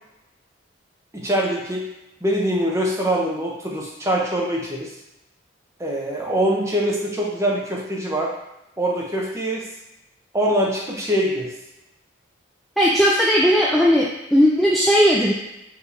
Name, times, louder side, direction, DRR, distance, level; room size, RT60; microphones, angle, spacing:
voice 1, 1.1-1.8 2.2-4.9 5.8-8.3 8.8-9.6 10.3-11.5, right 1 dB, 15° right, -3 dB, 0.7 m, -23 dB
voice 2, 12.8-15.3, equal, ahead, -5 dB, 0.3 m, -17 dB
5.1 x 3.3 x 2.7 m, 0.91 s
head